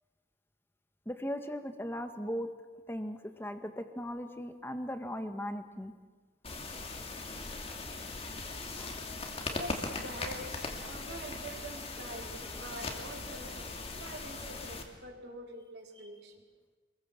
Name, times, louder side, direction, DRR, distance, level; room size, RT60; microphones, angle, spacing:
voice 1, 1.0-2.5 2.9-5.9 8.8-8.9 12.4-12.5 12.9-13.0, equal, 10° left, 8 dB, 1.6 m, -38 dB
sound 1, 6.4-14.8, left 3 dB, 35° left, 2.7 m, -40 dB
voice 2, 9.5-16.4, right 1 dB, 65° right, 1 dB, 4.2 m, -46 dB
28.0 x 22.0 x 7.4 m, 1.4 s
head